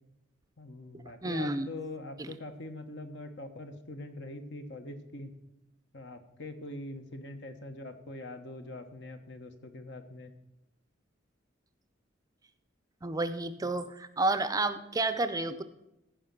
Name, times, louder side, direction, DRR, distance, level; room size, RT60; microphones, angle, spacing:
voice 1, 0.6-5.3 5.9-10.3 13.6-13.7, left 2 dB, 65° left, 7 dB, 1.1 m, -43 dB
voice 2, 1.2-1.7 2.2-2.3 13.0-15.6, right 2 dB, 20° right, 12 dB, 0.5 m, -30 dB
15.0 x 5.1 x 5.9 m, 0.88 s
head